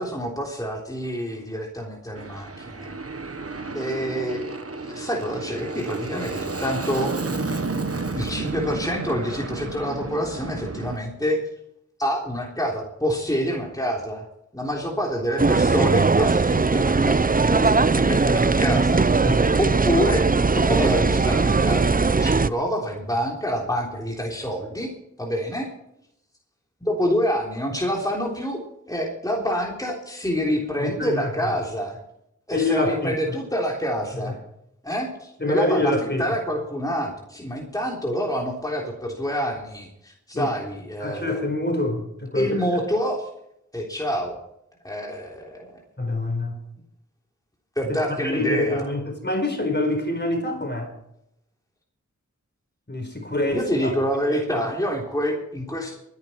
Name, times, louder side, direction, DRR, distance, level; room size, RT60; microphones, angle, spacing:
voice 1, 0.0-2.9 3.7-7.1 8.1-11.4 12.0-14.2 14.5-19.1 19.6-20.3 20.5-24.9 25.2-25.7 26.8-28.6 28.9-32.0 32.5-34.3 34.8-41.4 42.3-43.3 43.7-44.4 44.8-45.8 47.7-48.9 53.5-56.0, equal, 10° left, 3.5 m, -27 dB
Aircraft, 2.1-11.0, right 3 dB, 50° right, 1.4 m, -31 dB
sound 1, 15.4-22.5, right 4 dB, 30° right, 0.6 m, -19 dB
voice 2, 19.2-19.6 30.8-31.3 32.5-33.4 34.1-34.4 35.4-36.2 40.3-40.5 41.0-42.6 46.0-46.6 47.9-50.9 52.9-53.9 54.3-54.7, left 2 dB, 35° left, 4.5 m, -26 dB
23.5 x 11.0 x 4.5 m
wide cardioid pair, 50°, 30 cm